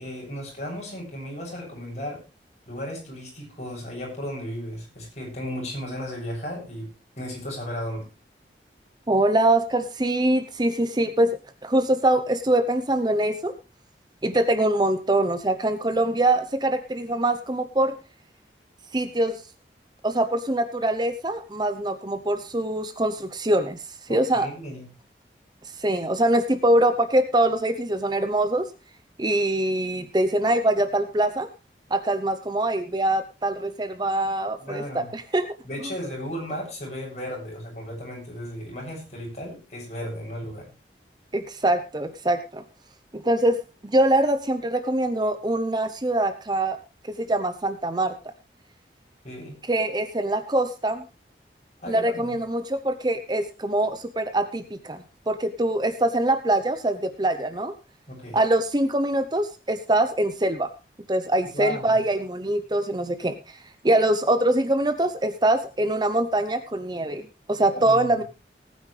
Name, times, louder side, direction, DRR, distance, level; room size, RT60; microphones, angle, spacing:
voice 1, 0.0-2.2 2.7-6.9 7.1-8.1 24.1-24.9 34.6-35.1 35.6-40.7 49.2-49.6 51.8-52.4 58.1-58.4 61.5-62.0 67.7-68.2, equal, 40° left, -2 dB, 7.5 m, -35 dB
voice 2, 9.1-13.5 14.2-17.9 18.9-19.4 20.0-23.8 24.1-24.5 25.8-28.7 29.2-31.5 31.9-35.5 35.8-35.9 41.3-42.6 43.1-46.8 47.0-48.3 49.6-51.0 51.9-57.7 58.3-60.7 61.1-63.4 63.8-68.2, right 1 dB, 25° right, 10 dB, 0.8 m, -23 dB
19.0 x 9.4 x 3.3 m, 0.29 s
head